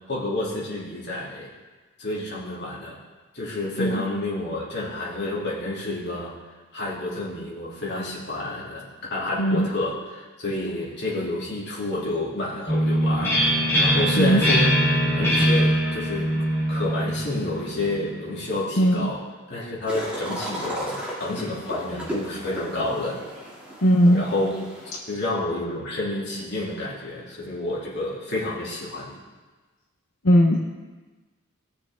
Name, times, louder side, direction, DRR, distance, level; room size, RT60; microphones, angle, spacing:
voice 1, 0.0-1.5 2.0-3.0 3.3-6.3 6.7-13.4 13.7-14.8 15.1-16.3 16.7-23.2 24.1-24.6 25.1-29.1, left 2 dB, 55° left, -6 dB, 2.9 m, -29 dB
sound 1, 12.7-18.3, equal, 15° left, 3.7 m, -22 dB
voice 2, 18.8-19.1 23.8-24.2 30.2-30.6, equal, 75° left, -1 dB, 0.9 m, -18 dB
sound 2, 19.9-25.0, equal, 5° right, 2.6 m, -35 dB
19.5 x 6.7 x 3.6 m, 1.3 s
head